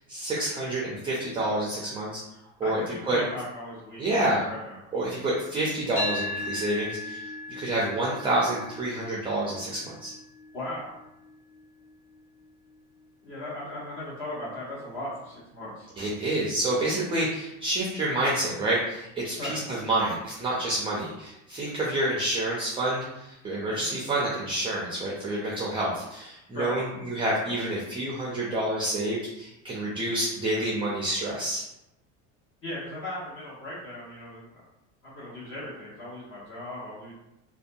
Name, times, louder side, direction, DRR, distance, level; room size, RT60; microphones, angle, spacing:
voice 1, 0.0-2.2 2.6-3.2 4.0-4.5 4.9-7.2 7.5-10.1 16.0-31.6, right 1 dB, 15° right, -5 dB, 0.4 m, -28 dB
voice 2, 2.6-4.0 4.5-4.8 10.5-11.0 13.2-15.9 19.4-19.6 23.7-23.9 26.5-26.8 32.6-34.6 35.0-37.1, left 1 dB, 40° left, -9 dB, 1.0 m, -37 dB
sound 1, 6.0-14.1, left 1 dB, ahead, 1.3 m, -38 dB
2.6 x 2.2 x 2.6 m, 0.88 s
cardioid pair, 135°, 34 cm